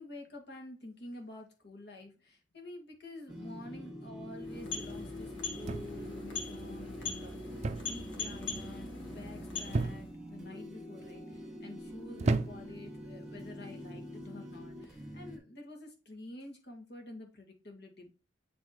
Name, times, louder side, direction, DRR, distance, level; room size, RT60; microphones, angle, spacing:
voice 1, 0.0-18.1, left 2 dB, 60° left, 2 dB, 2.1 m, -49 dB
sound 1, 3.3-15.4, equal, 5° right, 1.2 m, -46 dB
sound 2, 4.4-10.2, left 4 dB, 75° left, 1.7 m, -42 dB
sound 3, 5.7-6.2 7.6-8.0 8.3-8.7 9.7-10.3 11.0-11.4 12.2-12.8 13.8-14.1, right 3 dB, 35° right, 0.5 m, -33 dB
9.5 x 3.5 x 3.0 m, 0.33 s
head